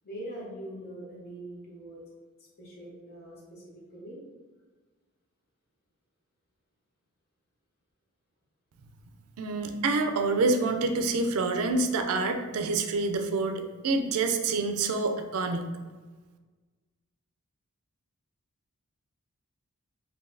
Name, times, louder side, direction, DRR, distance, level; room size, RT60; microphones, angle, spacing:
voice 1, 0.0-2.0 2.6-3.6 3.9-4.2, right 1 dB, 45° left, -4 dB, 1.0 m, -42 dB
voice 2, 9.4-15.6, right 3 dB, 65° right, 6 dB, 0.4 m, -27 dB
3.8 x 2.7 x 2.6 m, 1.3 s
head